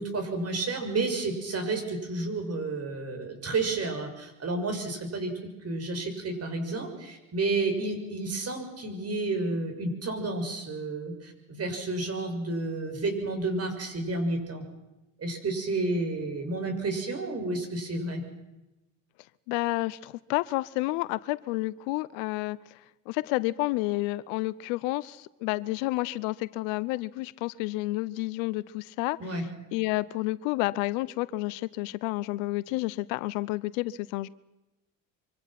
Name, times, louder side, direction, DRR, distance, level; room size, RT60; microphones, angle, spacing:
voice 1, 0.0-14.6 15.2-18.2 29.2-29.4, right 2 dB, 35° right, 5 dB, 6.7 m, -31 dB
voice 2, 19.5-22.6 23.1-29.5 29.7-34.3, left 20 dB, 70° left, 19 dB, 0.8 m, -30 dB
25.0 x 25.0 x 6.0 m, 0.99 s
hypercardioid pair, 70°, 40 cm